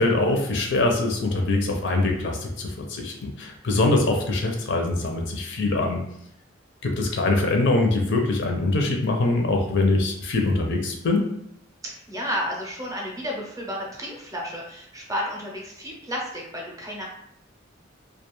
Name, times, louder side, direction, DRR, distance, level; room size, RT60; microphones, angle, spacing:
voice 1, 0.0-6.1 6.8-11.2, left 2 dB, 60° left, 2 dB, 0.5 m, -23 dB
voice 2, 11.8-17.1, equal, 15° right, -2 dB, 0.6 m, -32 dB
2.4 x 2.3 x 3.0 m, 0.71 s
head